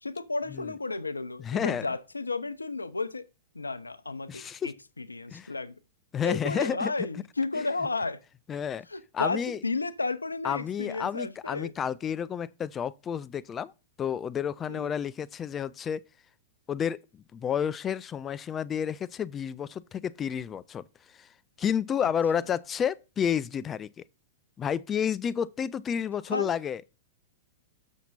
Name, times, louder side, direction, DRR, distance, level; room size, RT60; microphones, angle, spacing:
voice 1, 0.0-3.2 3.5-5.8 6.2-8.2 8.9-11.7 14.7-14.9 22.0-22.1 22.4-22.5 26.3-26.5, left 3 dB, 85° left, 0.6 m, -33 dB
voice 2, 1.4-1.9 4.3-4.7 5.3-5.5 6.1-6.9 8.5-8.9 9.1-9.6 10.4-13.7 14.0-16.0 16.7-20.8 21.1-21.3 21.6-23.9 24.6-26.8, left 8 dB, 25° left, 0.4 m, -30 dB
7.2 x 5.9 x 4.1 m
figure-of-eight pair, 105°, 0 cm